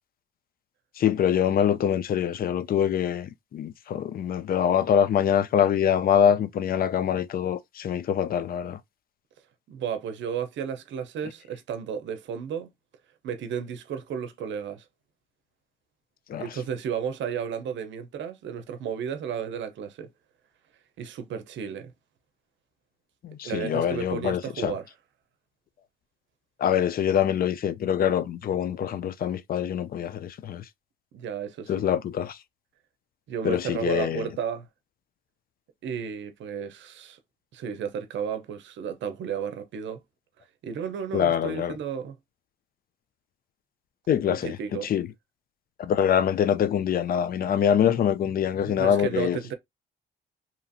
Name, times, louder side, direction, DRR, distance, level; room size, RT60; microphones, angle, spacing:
voice 1, 1.0-8.8 16.3-16.5 23.2-24.7 26.6-30.6 31.7-32.4 33.4-34.3 41.1-41.8 44.1-44.6 44.8-45.1 45.8-49.4, left 9 dB, 50° left, 0.4 m, -24 dB
voice 2, 9.7-12.7 13.2-14.9 16.4-20.1 21.0-21.9 23.4-24.8 31.1-31.7 33.3-34.7 35.8-37.2 37.5-40.0 40.6-42.2 44.3-44.9 48.6-49.5, right 7 dB, 70° right, 0.6 m, -33 dB
2.8 x 2.4 x 2.6 m
cardioid pair, 90°, 20 cm